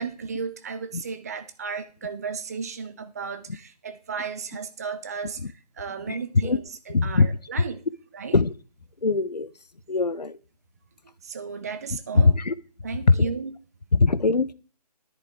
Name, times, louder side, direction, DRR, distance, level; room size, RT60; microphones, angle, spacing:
voice 1, 0.0-5.4 5.8-7.8 8.1-8.3 11.2-12.3 12.8-13.6, right 5 dB, 25° right, 0.5 m, -34 dB
voice 2, 6.9-7.3 8.3-8.5 9.0-9.5 9.9-10.4 12.1-12.5 13.1-13.3 13.9-14.5, left 4 dB, 80° left, 0.7 m, -21 dB
11.0 x 10.5 x 3.6 m
figure-of-eight pair, 150°, 21 cm